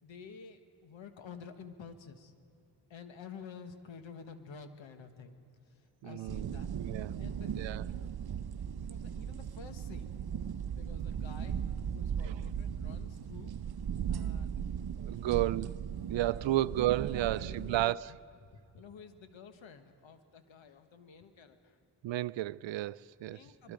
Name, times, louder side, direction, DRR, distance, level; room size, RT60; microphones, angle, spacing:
voice 1, 0.0-2.3 2.9-6.7 7.2-7.5 7.8-8.1 8.7-10.2 10.7-13.5 14.1-14.6 15.1-15.5 16.0-16.6 17.0-21.8 23.3-23.7, left 6 dB, 85° left, 1.5 m, -51 dB
voice 2, 6.0-7.1 7.5-7.8 12.2-12.3 15.0-15.7 16.1-18.1 22.0-23.4 23.6-23.7, right 15 dB, 80° right, 0.5 m, -32 dB
sound 1, 6.3-17.8, right 8 dB, 55° right, 0.8 m, -37 dB
25.0 x 22.5 x 5.1 m
cardioid pair, 50°, 45 cm